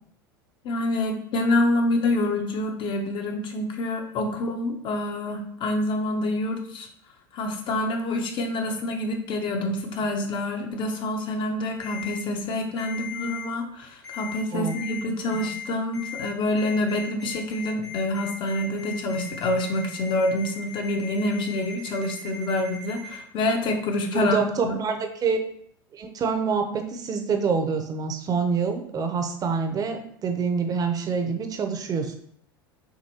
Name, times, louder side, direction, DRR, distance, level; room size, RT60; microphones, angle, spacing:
voice 1, 0.6-6.9 7.3-24.8, left 1 dB, 45° left, 3 dB, 1.0 m, -27 dB
Ringtone, 11.8-12.2 12.8-13.4 14.0-14.4 14.7-15.0 15.3-15.6 15.9-16.3 16.6-23.2, left 7 dB, 90° left, 1.9 m, -38 dB
voice 2, 24.0-25.4 25.9-32.1, right 5 dB, 30° right, 5 dB, 0.8 m, -26 dB
6.5 x 2.6 x 2.9 m, 0.65 s
hypercardioid pair, 85°, 12 cm